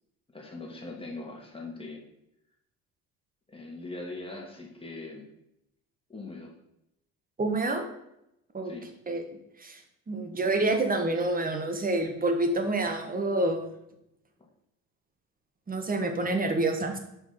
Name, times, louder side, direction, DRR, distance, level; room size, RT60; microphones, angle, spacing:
voice 1, 0.3-2.0 3.5-5.2 6.1-6.5 8.6-8.9, left 2 dB, 15° left, -1 dB, 2.4 m, -41 dB
voice 2, 7.4-7.9 8.5-8.7 9.1-9.2 9.6-9.8 10.1-13.6 15.7-17.0, right 2 dB, 25° right, 5 dB, 1.5 m, -27 dB
5.8 x 5.7 x 5.8 m, 0.83 s
cardioid pair, 90°, 35 cm